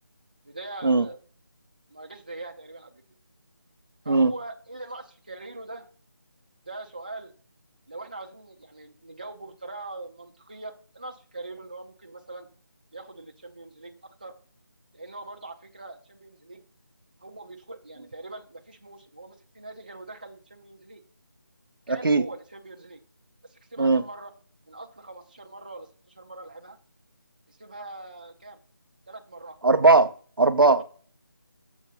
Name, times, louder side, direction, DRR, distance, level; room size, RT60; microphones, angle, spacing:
voice 1, 0.4-1.2 1.9-3.0 4.0-5.9 6.7-7.3 7.9-12.5 12.9-14.3 14.9-16.6 17.2-21.0 21.9-23.0 23.5-24.3 24.7-26.8 27.5-28.6 29.1-29.6 30.6-30.8, right 2 dB, 25° right, 0.5 m, -42 dB
voice 2, 21.9-22.2 23.8-24.0 29.6-30.8, right 3 dB, 85° right, 0.8 m, -19 dB
7.1 x 6.2 x 3.9 m
figure-of-eight pair, 180°, 11 cm